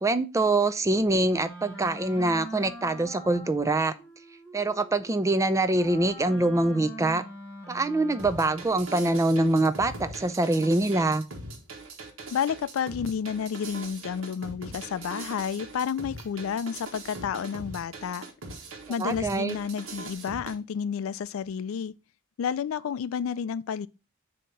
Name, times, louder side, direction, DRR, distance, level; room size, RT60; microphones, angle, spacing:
voice 1, 0.0-3.9 4.5-7.2 7.7-11.2 19.0-19.6, right 2 dB, 15° right, 0.4 m, -24 dB
Wind instrument woodwind instrument, 1.3-8.7, right 1 dB, 10° left, 1.4 m, -44 dB
sound 1, 8.2-20.6, right 2 dB, 70° right, 1.3 m, -41 dB
voice 2, 12.3-18.2 18.9-21.9 22.4-23.9, left 7 dB, 75° left, 0.3 m, -30 dB
6.9 x 2.8 x 5.2 m
head